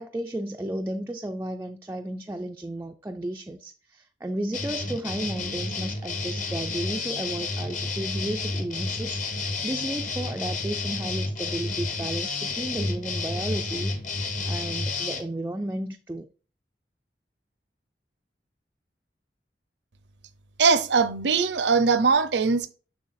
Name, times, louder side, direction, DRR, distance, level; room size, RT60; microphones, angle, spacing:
voice 1, 0.0-13.9 14.5-16.3, right 1 dB, 15° right, 0.3 m, -33 dB
sound 1, 4.5-15.2, left 3 dB, 45° left, 1.0 m, -30 dB
voice 2, 20.6-22.7, right 5 dB, 80° right, 0.6 m, -21 dB
7.2 x 6.2 x 2.5 m
head